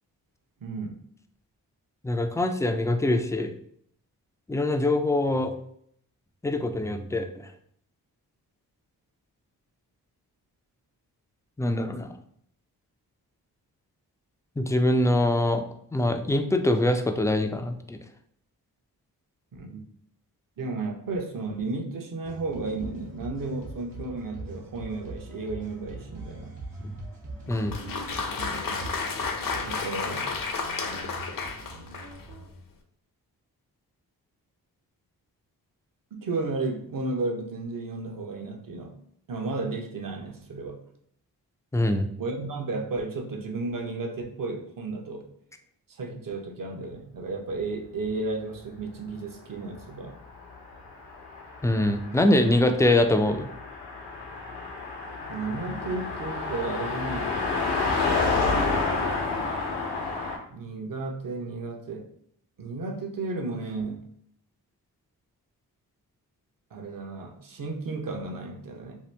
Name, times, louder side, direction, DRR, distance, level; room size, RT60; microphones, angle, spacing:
voice 1, 0.6-1.0 19.5-19.8 20.6-26.5 29.7-30.4 36.1-39.0 39.3-40.8 42.2-45.2 45.9-50.2 55.3-57.4 60.5-62.1 62.6-64.0 66.7-69.0, right 3 dB, 55° right, 3 dB, 0.8 m, -33 dB
voice 2, 2.0-3.5 4.5-5.5 6.4-7.3 11.6-12.2 14.6-15.6 15.9-18.0 26.8-27.0 27.5-27.8 41.7-42.1 51.6-53.5, left 1 dB, 10° left, 6 dB, 0.3 m, -23 dB
sound 1, 22.2-32.5, right 2 dB, 80° right, 1.0 m, -42 dB
Applause, 27.5-32.3, left 4 dB, 55° left, 0.6 m, -32 dB
Car passing by, 50.2-60.4, left 3 dB, 85° left, 0.9 m, -29 dB
2.9 x 2.4 x 3.2 m, 0.65 s
cardioid pair, 50°, 40 cm